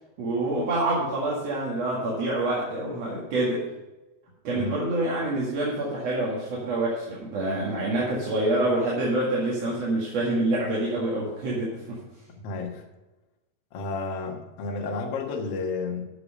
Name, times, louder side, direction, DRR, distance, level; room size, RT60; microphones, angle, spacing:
voice 1, 0.2-3.6 4.4-12.0, right 2 dB, 45° right, -5 dB, 2.4 m, -26 dB
voice 2, 12.4-12.8 13.7-16.1, left 3 dB, 60° left, 1 dB, 1.6 m, -31 dB
11.0 x 6.8 x 6.5 m, 1.1 s
omnidirectional pair, 4.9 m